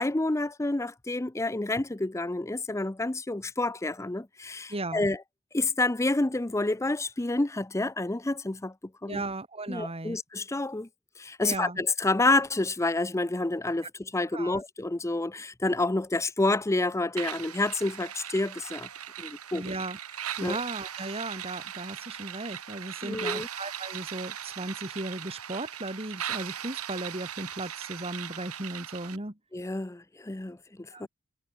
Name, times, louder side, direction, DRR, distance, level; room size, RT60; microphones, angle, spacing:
voice 1, 0.0-5.2 5.5-8.7 9.0-9.2 9.7-10.9 11.2-18.9 19.2-19.6 20.4-20.6 23.0-23.5 29.5-30.6 31.0-31.1, left 2 dB, 15° left, 0.6 m, -28 dB
voice 2, 4.7-5.1 9.1-10.2 11.4-11.8 13.8-13.9 14.3-14.6 19.5-20.0 20.4-29.3 30.9-31.1, right 2 dB, 25° right, 2.9 m, -36 dB
sound 1, 17.2-29.2, right 9 dB, 90° right, 3.4 m, -39 dB
head